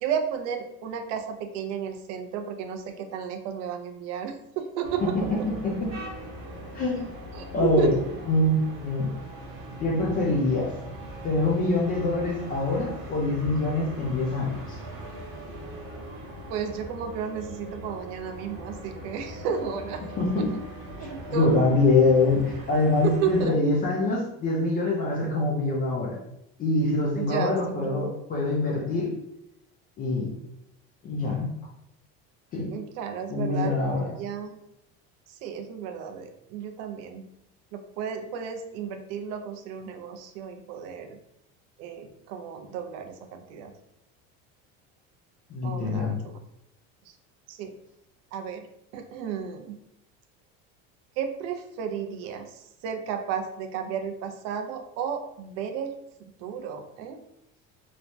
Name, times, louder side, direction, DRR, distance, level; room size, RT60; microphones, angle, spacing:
voice 1, 0.0-5.3 7.3-7.9 16.5-20.0 20.4-20.5 21.0-21.5 23.0-23.5 27.1-28.1 32.7-33.8 34.2-34.6 35.4-37.3 37.7-41.2 41.8-43.7 45.6-46.4 47.5-47.7 48.3-48.6 48.9-49.8 51.2-52.5 52.8-55.9 56.4-57.2, right 7 dB, 55° right, 6 dB, 0.4 m, -33 dB
sound 1, 4.8-23.4, right 1 dB, 40° right, 0.9 m, -40 dB
voice 2, 5.0-5.9 6.7-7.0 7.5-8.0 8.3-9.1 9.8-10.7 11.2-14.8 20.2-20.5 21.0-26.2 26.6-29.1 30.0-30.3 31.0-31.5 32.5-32.7 33.3-34.1 45.5-46.2, left 2 dB, 30° left, -3 dB, 0.4 m, -24 dB
3.2 x 2.1 x 2.6 m, 0.80 s
cardioid pair, 155°, 30 cm